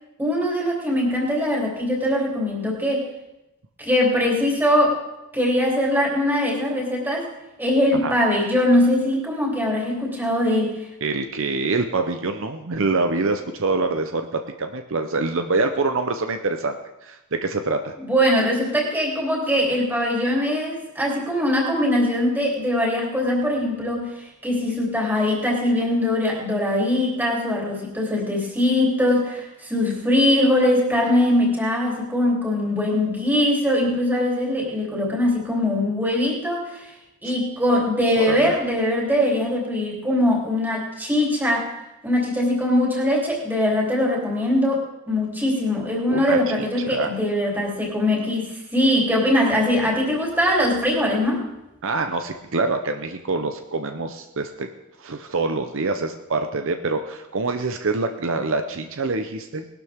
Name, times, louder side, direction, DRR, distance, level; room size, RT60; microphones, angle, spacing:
voice 1, 0.2-3.1 3.8-5.0 5.3-10.9 18.0-36.9 37.2-41.7 42.0-51.5, left 1 dB, 10° right, -3 dB, 3.3 m, -22 dB
voice 2, 11.0-16.8 17.0-18.0 37.2-37.3 38.1-38.6 46.1-47.1 51.8-54.7 55.0-59.7, right 3 dB, 60° right, 6 dB, 0.8 m, -25 dB
20.0 x 12.5 x 3.6 m, 0.96 s
head